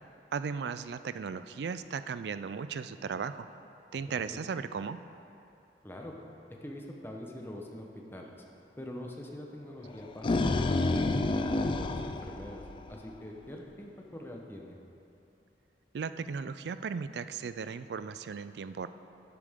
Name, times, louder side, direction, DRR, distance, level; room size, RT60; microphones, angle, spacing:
voice 1, 0.3-3.5 3.9-5.0 15.9-18.9, right 5 dB, 65° right, 12 dB, 0.4 m, -36 dB
voice 2, 3.9-4.4 5.8-6.1 6.5-8.3 8.8-14.8, left 1 dB, 15° left, 0 dB, 1.0 m, -44 dB
sound 1, 9.9-13.1, left 2 dB, 30° left, 0.3 m, -29 dB
12.0 x 8.3 x 3.7 m, 2.9 s
head